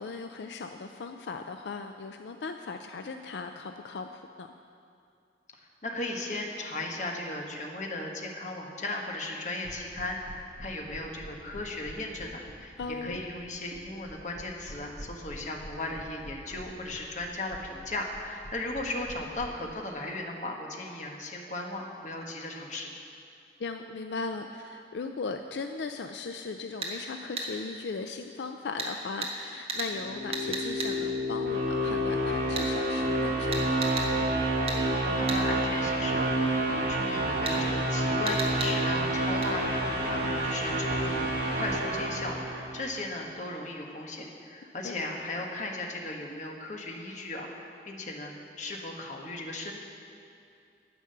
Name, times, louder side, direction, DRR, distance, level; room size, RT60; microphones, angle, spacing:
voice 1, 0.0-4.5 12.8-13.2 23.6-33.8 44.8-45.0, left 4 dB, 75° left, 6 dB, 0.4 m, -38 dB
voice 2, 5.8-22.9 34.7-49.8, left 2 dB, 45° left, 0 dB, 1.3 m, -37 dB
sound 1, 9.6-19.5, equal, 60° left, 3.4 m, -45 dB
sound 2, 26.8-26.9 27.4-27.5 28.8-28.9 29.2-29.3 29.7-29.9 30.3-30.9 32.6-32.7 33.5-34.1 34.7-34.8 35.3-35.4 37.5-37.6 38.3-38.7 39.4-39.5, right 3 dB, 35° right, 1.3 m, -33 dB
sound 3, 29.9-43.0, right 1 dB, 65° right, 1.9 m, -29 dB
10.0 x 8.7 x 6.7 m, 2.5 s
head